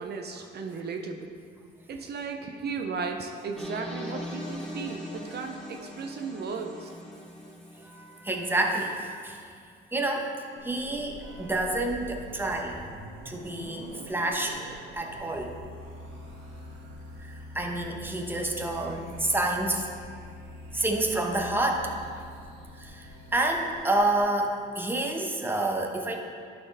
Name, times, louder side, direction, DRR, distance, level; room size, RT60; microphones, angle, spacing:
voice 1, 0.0-1.4 1.9-6.9, right 4 dB, 55° right, 3 dB, 0.6 m, -35 dB
sound 1, 3.6-8.5, left 1 dB, 5° left, 1.8 m, -40 dB
voice 2, 7.8-9.4 9.9-10.3 10.6-12.8 13.2-14.6 14.9-15.5 17.2-19.9 20.7-21.9 22.8-26.2, right 2 dB, 10° right, 2 dB, 0.9 m, -29 dB
sound 2, 10.6-24.3, equal, 90° right, 1.3 m, -44 dB
11.5 x 4.4 x 4.0 m, 2.2 s
cardioid pair, 90°, 20 cm